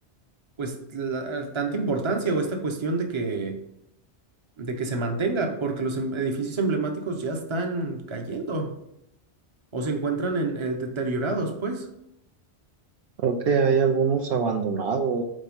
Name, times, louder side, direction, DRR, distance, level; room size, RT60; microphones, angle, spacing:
voice 1, 0.6-3.6 4.6-8.7 9.7-11.9, right 3 dB, 30° right, 4 dB, 0.8 m, -28 dB
voice 2, 13.2-15.2, right 6 dB, 65° right, 4 dB, 0.8 m, -23 dB
5.2 x 4.3 x 5.3 m, 0.81 s
omnidirectional pair, 1.1 m